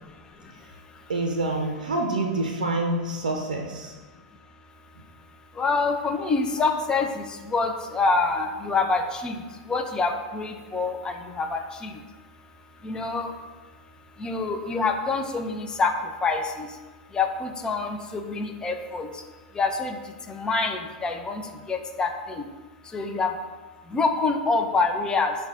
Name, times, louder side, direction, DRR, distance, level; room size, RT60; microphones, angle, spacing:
voice 1, 1.1-3.9, right 2 dB, 85° right, 1 dB, 0.5 m, -27 dB
voice 2, 5.6-9.4 9.7-11.9 12.8-13.3 14.2-15.9 16.2-16.7 17.1-19.1 19.6-20.0 20.3-21.4 21.7-22.1 22.4-22.5 22.9-23.3 23.9-25.3, left 4 dB, 20° left, 5 dB, 0.5 m, -26 dB
5.5 x 2.3 x 3.6 m, 1.3 s
hypercardioid pair, 105°, 4 cm